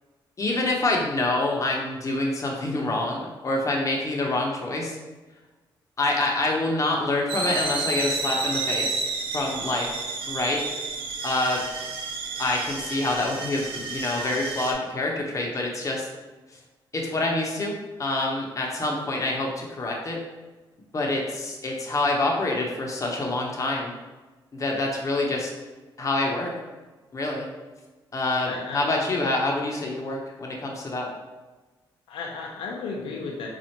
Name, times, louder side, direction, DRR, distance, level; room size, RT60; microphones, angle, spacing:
voice 1, 0.4-4.9 6.0-9.1 9.3-9.9 10.3-10.6 11.2-11.6 12.4-16.1 16.9-17.7 18.0-20.2 20.9-23.9 24.5-25.5 26.0-26.5 27.1-27.5 28.1-31.1, left 2 dB, 35° left, -1 dB, 0.8 m, -26 dB
sound 1, 7.3-14.7, right 3 dB, 80° right, 0.5 m, -31 dB
voice 2, 28.4-29.0 32.1-33.5, left 4 dB, 85° left, -1 dB, 0.5 m, -34 dB
4.1 x 2.4 x 2.9 m, 1.2 s
cardioid pair, 75°, 9 cm